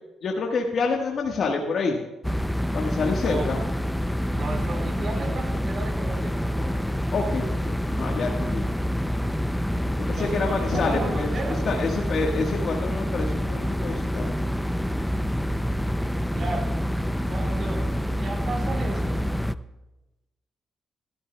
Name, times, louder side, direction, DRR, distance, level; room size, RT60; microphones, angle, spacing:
voice 1, 0.2-2.0 2.7-3.6 7.1-7.6 7.9-8.6 10.0-11.3 11.6-14.3, left 4 dB, 55° left, 0 dB, 1.4 m, -27 dB
sound 1, 2.2-19.5, equal, 5° left, 0.4 m, -27 dB
voice 2, 4.3-6.8 10.0-11.7 16.3-16.7 17.3-19.2, right 3 dB, 50° right, 2 dB, 3.1 m, -35 dB
20.5 x 13.0 x 2.3 m, 1.0 s
cardioid pair, 90°, 0 cm